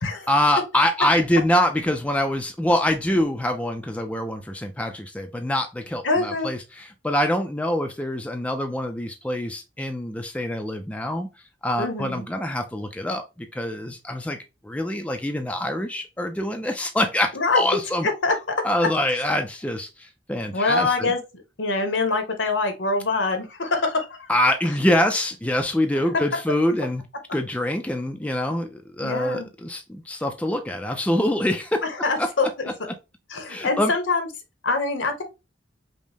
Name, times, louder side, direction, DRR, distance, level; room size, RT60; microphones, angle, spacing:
voice 1, 0.3-11.3 11.6-14.4 14.6-18.1 18.6-21.1 24.3-27.0 27.3-31.8 32.2-32.3 33.5-33.9, left 1 dB, 5° left, 0.3 m, -25 dB
voice 2, 6.0-6.5 11.8-12.2 17.3-17.6 18.0-18.5 20.5-21.2 21.6-24.3 29.0-29.5 32.0-32.5 33.3-34.3 34.6-35.2, left 3 dB, 75° left, 1.0 m, -24 dB
5.2 x 2.1 x 3.3 m
head